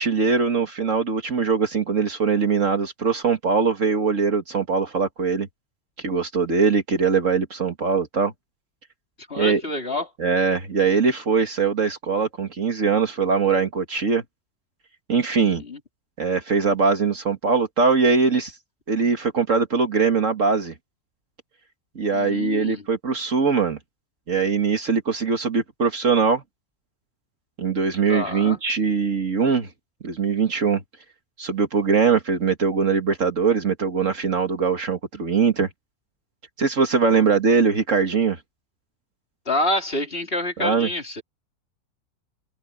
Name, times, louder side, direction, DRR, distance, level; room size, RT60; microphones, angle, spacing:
voice 1, 0.0-5.5 6.0-8.3 9.4-9.6 10.2-14.2 15.1-15.6 16.2-18.5 18.9-20.7 22.0-23.8 24.3-26.4 27.6-29.7 30.0-30.8 31.4-35.7 36.6-38.4 40.6-40.9, right 5 dB, 55° right, 2.1 m, -21 dB
voice 2, 9.3-10.1 15.3-15.8 22.1-22.8 28.1-28.6 37.1-37.2 39.5-41.2, left 1 dB, 40° left, 3.8 m, -27 dB
omnidirectional pair, 1.6 m